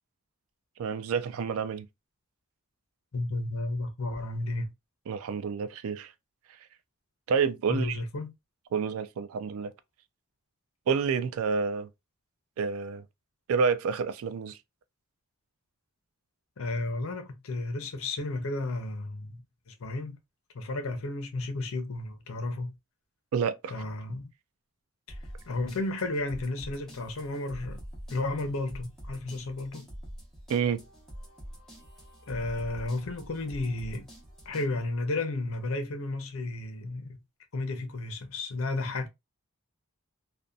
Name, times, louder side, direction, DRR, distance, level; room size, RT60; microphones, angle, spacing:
voice 1, 0.8-1.9 5.1-6.1 7.3-8.0 8.7-9.7 10.9-11.9 12.6-13.0 13.5-14.6 23.3-23.7 30.5-30.8, right 6 dB, 75° right, 0.3 m, -29 dB
voice 2, 3.1-4.7 7.7-8.3 16.6-20.2 20.5-22.7 23.7-24.3 25.1-25.2 25.5-27.8 28.1-29.9 32.3-34.1 34.5-37.2 37.5-39.1, left 2 dB, 70° left, 0.6 m, -33 dB
sound 1, 25.1-34.7, equal, ahead, 0.9 m, -45 dB
2.6 x 2.1 x 2.3 m
head